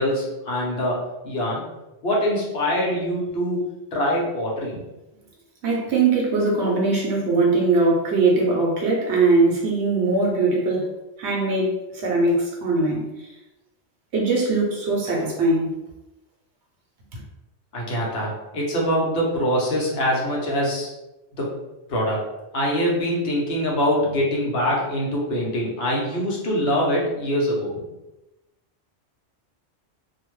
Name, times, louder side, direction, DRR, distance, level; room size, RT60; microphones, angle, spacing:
voice 1, 0.0-1.6 2.0-3.6 3.9-4.8 17.7-20.9 21.4-21.6 21.9-22.3 22.5-27.7, equal, 65° left, -3 dB, 1.0 m, -24 dB
voice 2, 5.6-10.9 11.2-13.3 14.1-15.7 17.1-17.2, right 3 dB, 75° right, -2 dB, 1.0 m, -21 dB
2.7 x 2.1 x 3.0 m, 0.98 s
omnidirectional pair, 1.2 m